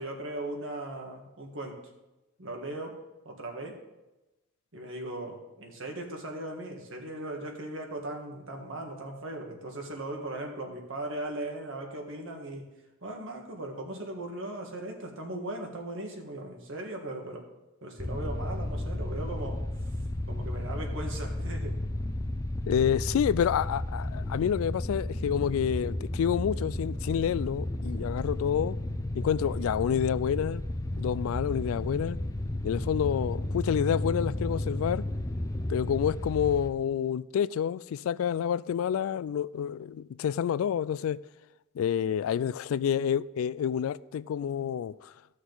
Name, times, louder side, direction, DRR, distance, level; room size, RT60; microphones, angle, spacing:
voice 1, 0.0-1.8 2.4-3.0 3.2-3.8 4.7-12.7 13.0-17.4 17.8-19.6 20.3-21.8 29.4-29.7, right 1 dB, 70° right, 1.6 m, -38 dB
sound 1, 18.0-36.7, left 1 dB, 15° left, 0.6 m, -33 dB
voice 2, 22.7-28.8 29.1-30.6 31.0-32.2 32.6-35.0 35.7-41.2 41.8-45.1, left 8 dB, 90° left, 0.3 m, -28 dB
13.5 x 6.4 x 3.9 m
head